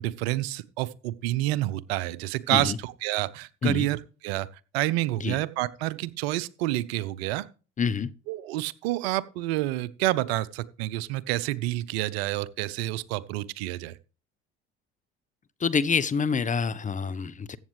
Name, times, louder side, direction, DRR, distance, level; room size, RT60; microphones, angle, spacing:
voice 1, 0.0-4.0 4.2-4.5 4.7-7.5 8.3-13.9, right 16 dB, 70° right, 0.7 m, -28 dB
voice 2, 7.8-8.1 15.6-17.6, left 6 dB, 25° left, 0.7 m, -27 dB
14.5 x 8.1 x 3.2 m
hypercardioid pair, 65°, 32 cm